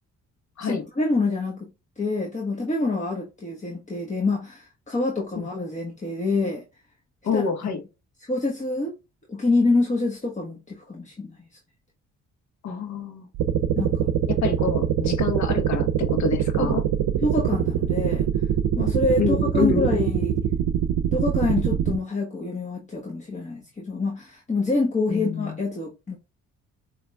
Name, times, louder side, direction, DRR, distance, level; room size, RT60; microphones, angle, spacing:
voice 1, 0.6-1.7 2.0-6.6 7.3-7.4 8.3-8.9 9.3-11.4 13.7-14.1 16.6-16.8 17.2-18.3 18.8-20.4 21.1-26.2, left 2 dB, 25° left, 1.2 m, -26 dB
voice 2, 7.2-7.8 12.6-13.3 14.3-16.8 19.2-20.0 25.1-25.6, left 5 dB, 65° left, 1.4 m, -27 dB
sound 1, 13.3-22.0, right 9 dB, 75° right, 0.6 m, -23 dB
6.9 x 3.1 x 2.3 m
cardioid pair, 90°, 30 cm